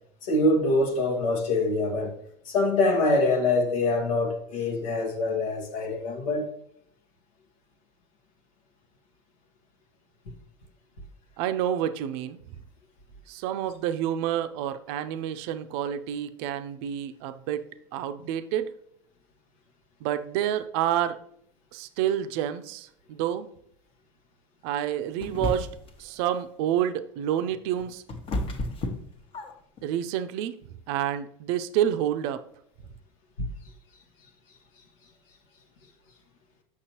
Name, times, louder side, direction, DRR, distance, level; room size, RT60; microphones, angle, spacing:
voice 1, 0.2-2.1 2.5-6.5 33.4-33.5, left 2 dB, 85° left, 1.2 m, -24 dB
voice 2, 11.4-12.4 13.3-18.7 20.0-21.2 21.7-23.5 24.6-25.7 26.0-28.0 29.8-30.5 30.9-32.4, right 10 dB, 60° right, 0.5 m, -28 dB
sound 1, 25.2-26.0 27.5-29.8, left 2 dB, 35° left, 0.9 m, -32 dB
6.5 x 6.0 x 2.9 m
hypercardioid pair, 100°, 16 cm